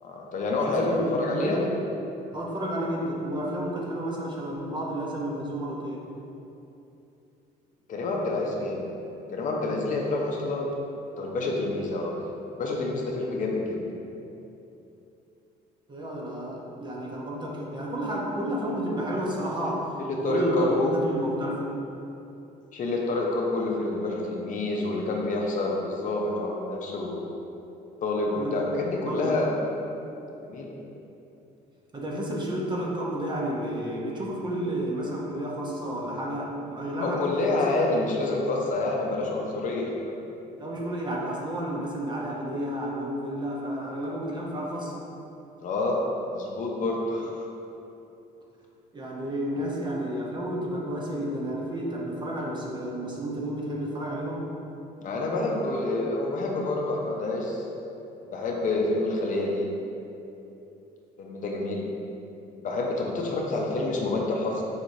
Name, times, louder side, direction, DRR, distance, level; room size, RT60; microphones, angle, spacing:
voice 1, 0.0-1.7 7.9-8.9 9.3-10.7 11.2-12.1 12.5-13.8 20.0-20.9 22.7-27.5 28.0-29.6 30.4-30.8 37.0-40.0 45.6-46.0 46.3-47.5 55.0-57.6 58.3-59.7 61.2-61.9 62.6-64.6, left 2 dB, 50° left, -1 dB, 0.6 m, -28 dB
voice 2, 0.7-1.6 2.3-6.0 15.9-21.6 28.3-28.6 29.0-29.3 31.9-37.6 37.9-38.0 40.6-45.0 48.9-54.5, right 1 dB, 25° right, -3 dB, 0.7 m, -31 dB
4.8 x 3.0 x 2.6 m, 2.9 s
cardioid pair, 110°, 17 cm